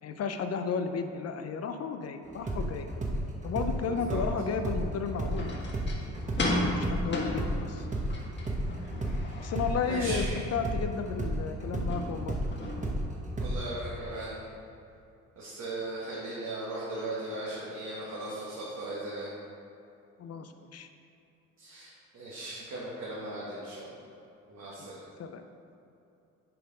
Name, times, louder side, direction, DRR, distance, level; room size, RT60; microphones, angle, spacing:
voice 1, 0.0-2.9 3.4-5.7 6.7-7.9 9.4-10.3 10.5-12.4 20.2-20.9 24.8-24.9 25.2-25.4, left 5 dB, 55° left, 8 dB, 0.5 m, -33 dB
sound 1, 2.3-9.2 9.5-13.8, right 1 dB, 25° right, 1.1 m, -32 dB
voice 2, 3.9-4.2 6.6-6.9 7.9-8.0 9.9-10.4 13.4-14.4 15.3-19.3 21.6-23.9 24.5-25.0, right 2 dB, 60° right, -7 dB, 1.6 m, -38 dB
sound 2, 5.2-12.7, left 1 dB, 35° left, 1.4 m, -35 dB
6.6 x 4.2 x 5.3 m, 2.7 s
cardioid pair, 90°, 30 cm